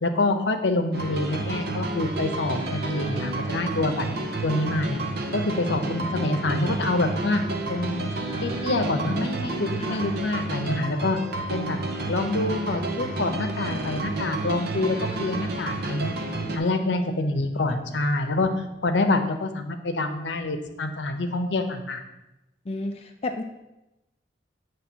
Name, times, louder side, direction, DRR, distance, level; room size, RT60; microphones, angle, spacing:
voice 1, 0.0-4.1 4.4-5.0 5.3-7.4 7.7-8.1 8.4-11.2 11.5-11.8 12.1-16.1 16.5-18.5 18.8-22.0, left 2 dB, 70° left, 7 dB, 0.7 m, -26 dB
sound 1, 0.9-16.6, right 2 dB, 60° right, 0.7 m, -30 dB
sound 2, 1.9-18.0, equal, 35° right, 1.2 m, -47 dB
voice 2, 6.0-6.3 9.8-10.1 16.6-16.8 22.7-23.4, left 2 dB, 35° left, 3 dB, 0.4 m, -33 dB
8.4 x 3.2 x 6.1 m, 0.96 s
head